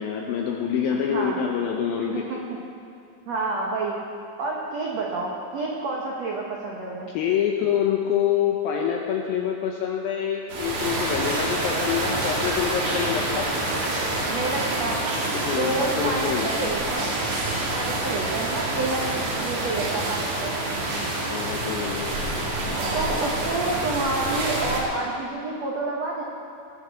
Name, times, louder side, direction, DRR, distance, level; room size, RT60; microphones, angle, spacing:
voice 1, 0.0-2.4 7.1-13.5 15.3-16.8 21.3-22.2, left 8 dB, 80° left, 1 dB, 2.2 m, -26 dB
voice 2, 0.9-1.4 2.1-2.4 3.3-4.0 4.4-7.1 14.3-15.0 15.6-17.2 17.7-19.1 19.3-20.6 22.9-26.2, right 3 dB, 75° right, -3 dB, 1.5 m, -29 dB
sound 1, 10.5-24.8, right 2 dB, 60° right, 3.7 m, -27 dB
19.0 x 6.7 x 7.4 m, 2.5 s
omnidirectional pair, 5.1 m